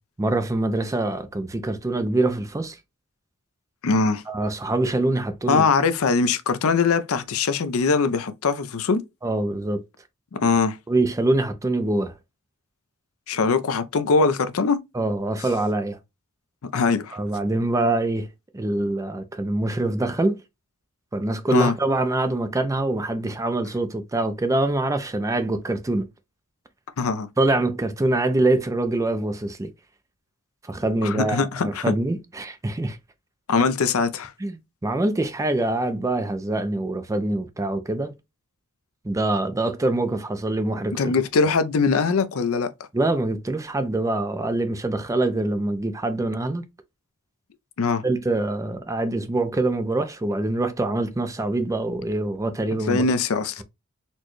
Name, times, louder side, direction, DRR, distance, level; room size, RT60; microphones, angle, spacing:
voice 1, 0.2-2.8 4.3-5.6 9.2-9.8 10.9-12.2 14.9-16.0 17.1-18.3 18.5-20.4 21.1-26.1 27.4-29.7 30.6-33.0 34.4-38.1 39.0-41.1 42.9-46.6 48.0-53.0, right 2 dB, 15° right, 0.4 m, -24 dB
voice 2, 3.8-4.2 5.5-9.0 10.3-10.8 13.3-14.8 16.7-17.2 21.5-21.7 27.0-27.3 31.0-31.9 33.5-34.3 40.9-42.7 47.8-48.0 52.9-53.6, left 4 dB, 65° left, 0.5 m, -22 dB
4.2 x 2.2 x 3.0 m
head